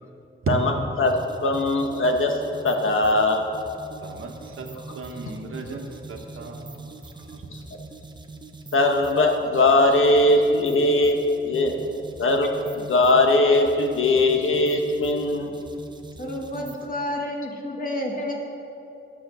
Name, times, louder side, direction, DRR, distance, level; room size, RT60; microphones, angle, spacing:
voice 1, 1.0-2.4 2.6-3.4 8.7-11.2 11.4-15.5, left 2 dB, 75° left, 3 dB, 1.2 m, -20 dB
sound 1, 1.1-16.9, right 3 dB, 20° right, 0.7 m, -43 dB
voice 2, 4.0-6.9 7.2-7.5, right 4 dB, 80° right, 3 dB, 1.3 m, -34 dB
voice 3, 16.2-18.3, left 1 dB, 40° left, 0 dB, 1.7 m, -30 dB
13.5 x 7.8 x 6.2 m, 2.8 s
wide cardioid pair, 160°, 21 cm